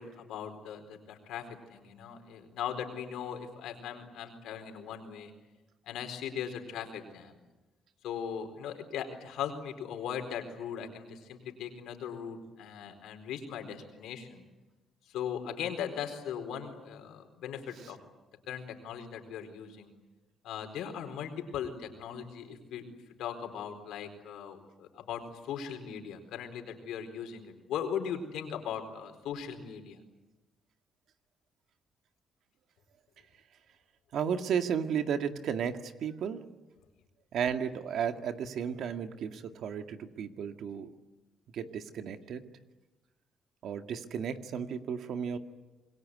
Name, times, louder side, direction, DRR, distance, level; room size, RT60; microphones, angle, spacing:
voice 1, 0.0-5.3 5.9-7.3 8.0-14.4 15.1-18.0 18.5-19.9 20.4-30.0, left 8 dB, 85° left, 6 dB, 4.4 m, -39 dB
voice 2, 34.1-36.4 37.3-40.9 41.5-42.4 43.6-45.4, right 7 dB, 70° right, 7 dB, 1.9 m, -34 dB
27.0 x 22.0 x 9.8 m, 1.1 s
cardioid pair, 90°, 0 cm